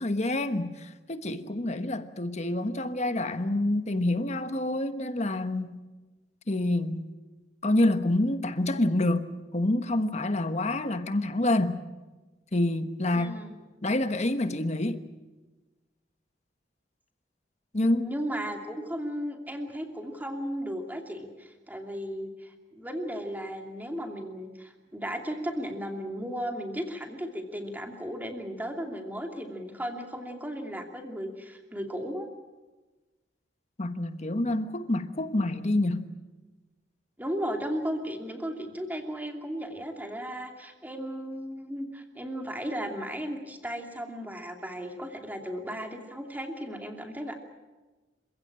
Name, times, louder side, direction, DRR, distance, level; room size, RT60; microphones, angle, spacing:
voice 1, 0.0-5.7 6.5-7.1 7.6-11.8 12.5-13.3 13.8-15.0 17.7-18.0 33.8-36.1, left 1 dB, 40° left, 1.3 m, -27 dB
voice 2, 13.1-13.5 17.8-32.3 37.2-47.4, equal, 10° right, 2.8 m, -35 dB
27.5 x 16.0 x 8.9 m
head